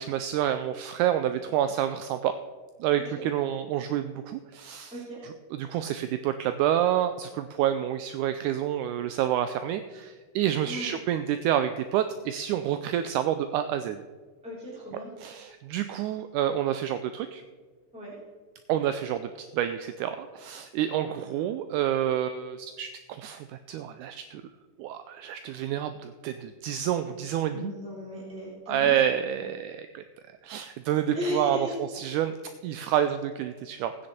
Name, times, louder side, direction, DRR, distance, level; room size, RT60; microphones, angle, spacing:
voice 1, 0.0-2.4 2.8-4.9 5.6-14.0 15.2-17.4 18.7-24.4 24.8-27.7 28.7-30.0 30.4-31.6 31.9-32.4 32.6-34.1, right 10 dB, 80° right, 9 dB, 1.8 m, -28 dB
voice 2, 14.4-15.1 17.9-18.2 27.5-29.0 29.3-29.5 31.1-31.7 32.8-33.0, equal, ahead, -7 dB, 3.5 m, -36 dB
18.0 x 9.6 x 4.3 m, 1.4 s
omnidirectional pair, 4.0 m